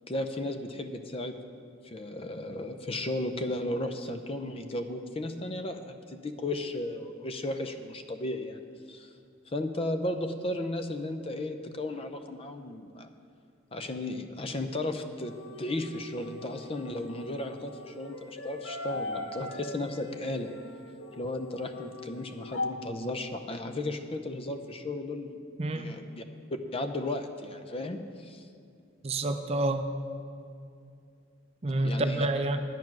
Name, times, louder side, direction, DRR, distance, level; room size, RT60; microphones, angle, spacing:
voice 1, 0.1-1.3 1.8-9.1 9.5-13.1 13.7-20.5 21.2-25.4 25.7-26.2 26.7-28.5 31.8-32.3, left 1 dB, 30° left, 7 dB, 0.6 m, -35 dB
sound 1, 15.2-22.7, left 2 dB, 90° left, 0.9 m, -40 dB
voice 2, 25.6-25.9 29.0-29.8 31.6-32.6, right 2 dB, 30° right, 8 dB, 0.5 m, -28 dB
9.6 x 9.1 x 6.0 m, 2.5 s
head